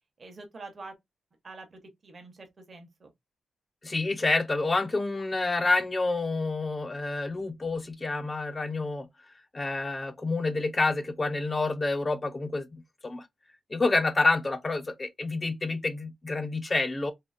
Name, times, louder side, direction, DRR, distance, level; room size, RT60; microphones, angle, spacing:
voice 1, 0.2-1.0 1.4-3.1, right 3 dB, 40° right, 0.8 m, -46 dB
voice 2, 3.8-9.1 9.5-13.3 13.7-17.1, left 3 dB, 25° left, 0.4 m, -28 dB
3.6 x 2.0 x 2.4 m
wide cardioid pair, 140°, 0 cm